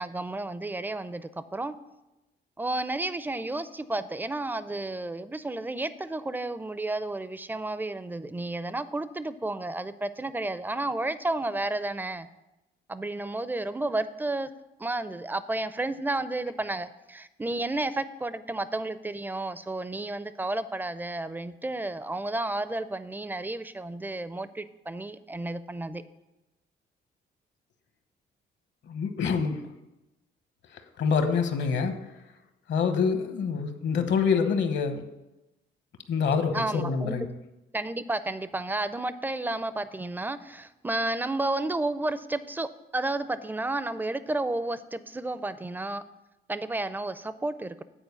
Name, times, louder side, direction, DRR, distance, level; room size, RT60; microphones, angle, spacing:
voice 1, 0.0-1.7 2.6-12.3 12.9-14.5 14.8-26.0 36.5-37.3 37.7-46.0 46.5-47.8, right 2 dB, 10° right, 14 dB, 0.4 m, -32 dB
voice 2, 28.9-29.6 31.0-32.0 32.7-35.0 36.1-37.3, left 5 dB, 65° left, 8 dB, 1.0 m, -26 dB
9.0 x 4.4 x 6.9 m, 0.97 s
cardioid pair, 90°, 20 cm